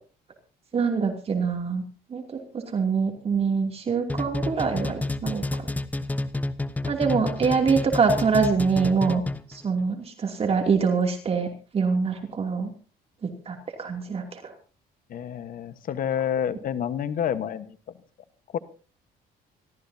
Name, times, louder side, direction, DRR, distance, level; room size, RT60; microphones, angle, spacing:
voice 1, 0.7-1.8 2.1-5.6 6.8-9.2 9.5-11.5 11.7-12.7 13.2-14.4, right 5 dB, 35° right, 3 dB, 2.8 m, -25 dB
sound 1, 4.1-9.6, left 2 dB, 10° left, 1.0 m, -29 dB
voice 2, 15.1-17.8 18.5-18.6, left 9 dB, 55° left, 12 dB, 1.3 m, -28 dB
26.0 x 14.0 x 2.8 m, 0.37 s
cardioid pair, 110°, 17 cm